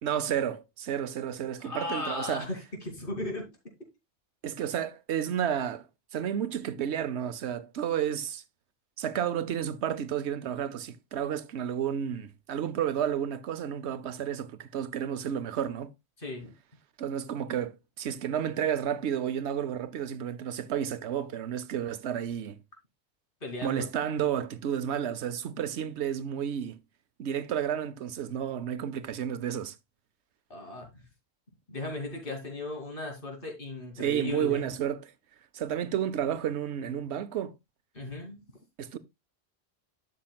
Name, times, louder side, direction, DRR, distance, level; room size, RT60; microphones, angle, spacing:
voice 1, 0.0-2.5 4.4-5.9 6.1-8.4 9.0-15.9 17.0-22.6 23.6-26.8 27.2-29.7 34.0-35.1 35.5-37.5 38.8-39.0, right 9 dB, 90° right, 1.0 m, -31 dB
voice 2, 1.6-3.5 16.2-16.5 23.4-23.9 30.5-30.9 31.7-34.7 37.9-38.4, left 2 dB, 55° left, 2.9 m, -36 dB
12.0 x 6.5 x 2.3 m
omnidirectional pair, 1.1 m